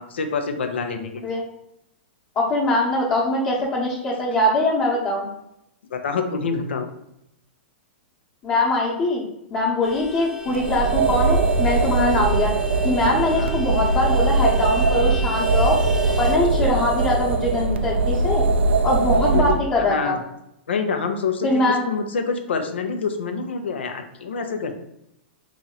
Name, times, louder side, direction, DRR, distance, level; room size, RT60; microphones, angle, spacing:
voice 1, 0.0-1.3 5.9-6.9 13.4-13.5 19.3-20.2 20.7-24.7, left 5 dB, 80° left, 6 dB, 0.6 m, -26 dB
voice 2, 2.3-5.2 8.4-9.2 9.5-12.5 12.8-15.8 16.2-18.4 18.8-20.1 21.4-21.9, left 2 dB, 35° left, -7 dB, 1.0 m, -22 dB
Vehicle horn car horn honking, 9.8-16.4, right 2 dB, ahead, 0.6 m, -35 dB
sound 1, 10.5-19.6, right 3 dB, 80° right, 0.4 m, -21 dB
3.0 x 2.9 x 3.8 m, 0.81 s
hypercardioid pair, 115°, 6 cm